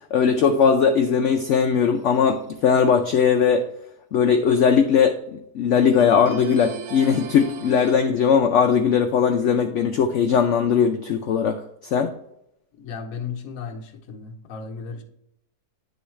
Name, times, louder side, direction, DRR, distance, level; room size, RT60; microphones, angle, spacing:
voice 1, 0.1-3.7 4.1-11.6 11.9-12.1, left 6 dB, 85° left, 0.6 m, -19 dB
sound 1, 2.0-2.6 6.0-8.0, right 6 dB, 70° right, 0.6 m, -38 dB
voice 2, 12.8-15.0, left 5 dB, 60° left, 1.1 m, -35 dB
9.8 x 3.9 x 3.1 m
omnidirectional pair, 1.8 m